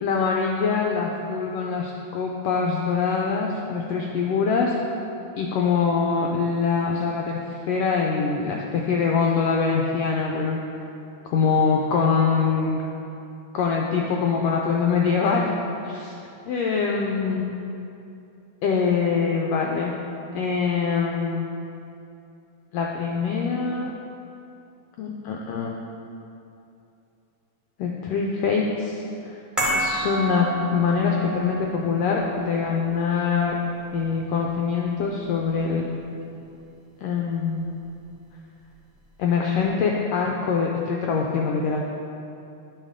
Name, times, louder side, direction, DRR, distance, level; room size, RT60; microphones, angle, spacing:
voice 1, 0.0-4.7 5.3-10.6 11.3-12.8 13.5-15.6 15.8-16.1 16.5-17.4 18.6-19.9 20.3-21.4 22.7-23.9 25.0-25.8 27.8-29.4 29.7-30.5 30.7-33.6 33.9-35.8 37.0-37.7 39.2-41.8, left 5 dB, 90° left, 0 dB, 1.4 m, -24 dB
sound 1, 29.6-36.0 36.2-36.4, right 1 dB, ahead, 0.5 m, -32 dB
10.5 x 5.3 x 3.6 m, 2.7 s
omnidirectional pair, 3.4 m